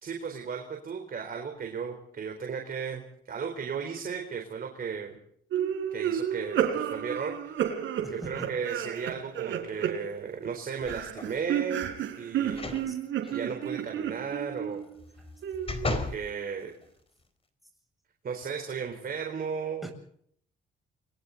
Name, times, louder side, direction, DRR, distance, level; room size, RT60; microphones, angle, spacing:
voice 1, 0.0-5.2 5.9-7.6 8.1-11.9 12.2-12.9 13.3-14.8 15.9-16.7 18.2-19.9, right 6 dB, 50° right, 3 dB, 4.2 m, -35 dB
sound 1, 5.5-10.5 10.8-14.9 15.4-16.1, right 9 dB, 80° right, 4.0 m, -32 dB
voice 2, 8.0-8.3 12.9-13.0 13.2-13.4 14.7-14.8 19.8-19.9, right 2 dB, ahead, 3 dB, 7.7 m, -42 dB
sound 2, 10.8-11.4 12.5-12.9 13.3-13.4 15.0-16.2 16.8-16.9, left 3 dB, 30° left, 4.2 m, -34 dB
30.0 x 22.5 x 4.1 m, 0.64 s
cardioid pair, 90°, 20 cm